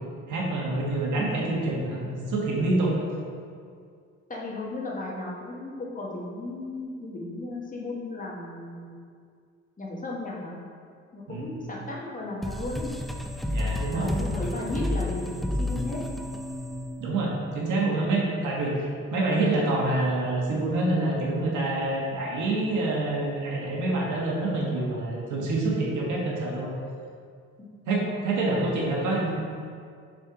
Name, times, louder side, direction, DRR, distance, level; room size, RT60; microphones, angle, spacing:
voice 1, 0.3-2.9 11.3-11.6 13.5-14.1 17.0-26.7 27.9-29.3, right 2 dB, 75° right, -3 dB, 1.5 m, -27 dB
voice 2, 4.3-9.0 9.8-10.6 11.1-12.9 13.9-16.0 27.6-28.3, left 2 dB, 25° left, -4 dB, 1.4 m, -35 dB
sound 1, 12.4-17.7, left 1 dB, ahead, 0.4 m, -31 dB
5.3 x 4.4 x 4.9 m, 2.2 s
cardioid pair, 90°, 30 cm